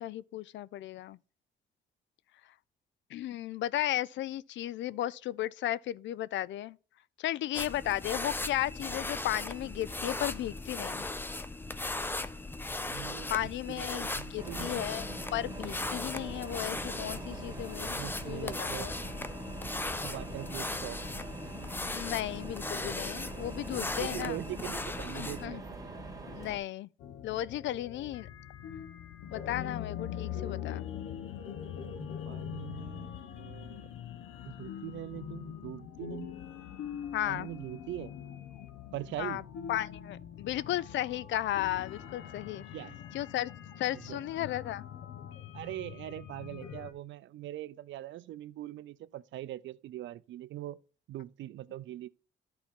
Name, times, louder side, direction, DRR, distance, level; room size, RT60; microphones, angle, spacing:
voice 1, 0.0-1.2 3.1-6.8 7.2-11.1 13.3-14.1 14.3-18.0 18.2-18.9 21.9-24.4 25.1-25.6 26.3-26.9 27.2-28.3 29.3-30.9 37.1-37.5 39.2-39.4 39.7-42.6 43.1-43.5 43.8-44.8, left 13 dB, 70° left, 0.4 m, -34 dB
sound 1, 7.5-25.5, left 2 dB, 10° left, 0.5 m, -38 dB
voice 2, 12.8-14.8 17.9-18.9 20.0-21.0 23.7-25.6 31.7-33.9 34.5-36.4 37.3-38.1 38.9-39.4 42.6-43.0 43.9-44.2 45.5-50.8 51.1-52.1, right 14 dB, 70° right, 0.4 m, -42 dB
sound 2, 14.4-26.6, right 2 dB, 15° right, 2.2 m, -43 dB
sound 3, 27.0-46.9, left 9 dB, 85° left, 0.9 m, -43 dB
11.5 x 4.3 x 3.6 m
cardioid pair, 90°, 20 cm